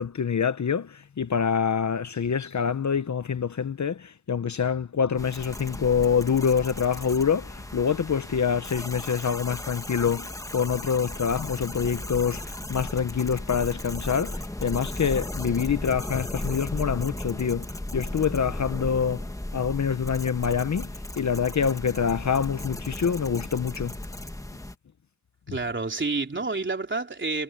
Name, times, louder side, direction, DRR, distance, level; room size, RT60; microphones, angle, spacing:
voice 1, 0.0-17.7 17.9-19.3 19.5-20.9 21.2-24.0, left 7 dB, 55° left, 1.1 m, -26 dB
sound 1, 5.2-24.7, left 1 dB, 10° left, 1.4 m, -36 dB
voice 2, 25.5-27.4, right 3 dB, 35° right, 3.6 m, -29 dB
wide cardioid pair, 95°, 34 cm